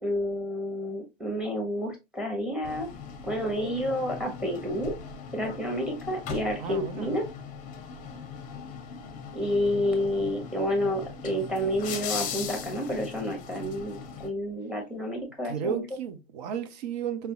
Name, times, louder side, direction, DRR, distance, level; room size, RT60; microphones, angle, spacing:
voice 1, 0.0-2.9 3.2-4.9 5.3-7.2 9.3-15.8, equal, 5° right, 1.0 m, -29 dB
sound 1, 2.6-14.3, left 6 dB, 25° left, 0.7 m, -39 dB
voice 2, 6.6-7.1 15.4-17.3, right 7 dB, 45° right, 0.7 m, -33 dB
5.4 x 2.1 x 2.6 m
figure-of-eight pair, 95°, 30 cm